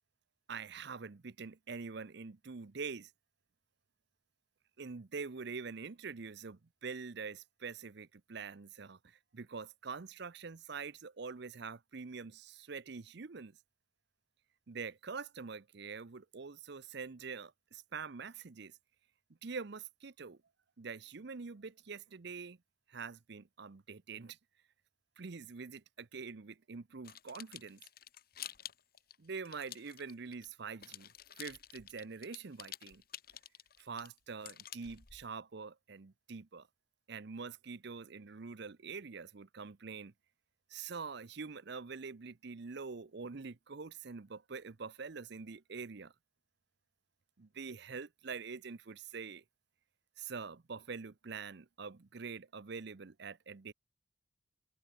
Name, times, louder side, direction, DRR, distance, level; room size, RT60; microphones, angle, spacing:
voice 1, 0.5-3.1 4.8-13.6 14.7-18.8 19.4-20.4 20.8-22.6 22.9-24.4 25.2-27.8 29.2-31.1 31.4-33.0 33.8-36.7 37.1-40.1 40.7-46.1 47.4-49.4 50.2-53.7, right 5 dB, 55° right, 0.6 m, -45 dB
sound 1, 27.0-30.5 30.8-35.3, left 11 dB, 50° left, 1.7 m, -50 dB
head